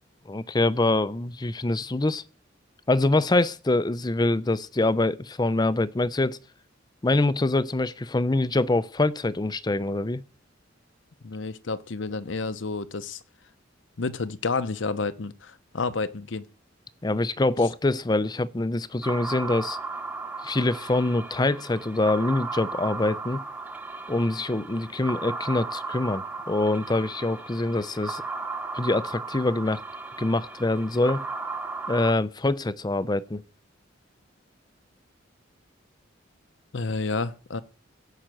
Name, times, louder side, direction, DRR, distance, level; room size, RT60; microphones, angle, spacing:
voice 1, 0.3-2.2 2.9-6.4 7.0-10.2 17.0-19.8 20.4-23.4 24.1-28.2 28.7-29.8 30.2-31.3 31.9-33.4, left 2 dB, 20° left, 0.5 m, -25 dB
voice 2, 11.2-13.2 14.0-16.5 36.7-37.6, left 3 dB, 70° left, 0.8 m, -30 dB
sound 1, 19.0-32.1, right 3 dB, 10° right, 1.0 m, -35 dB
16.5 x 5.7 x 7.7 m
head